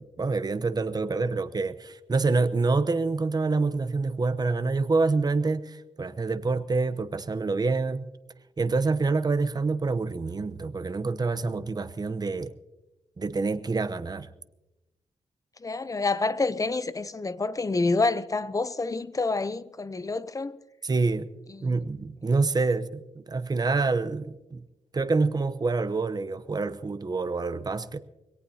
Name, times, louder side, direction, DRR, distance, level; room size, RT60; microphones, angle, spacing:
voice 1, 0.0-8.0 8.6-12.5 13.2-14.3 20.8-21.3 21.6-24.6 24.9-28.0, right 3 dB, 30° right, 0.8 m, -27 dB
voice 2, 15.6-20.6 21.5-21.8, left 3 dB, 25° left, 0.7 m, -28 dB
22.5 x 17.5 x 2.8 m
cardioid pair, 90°, 13 cm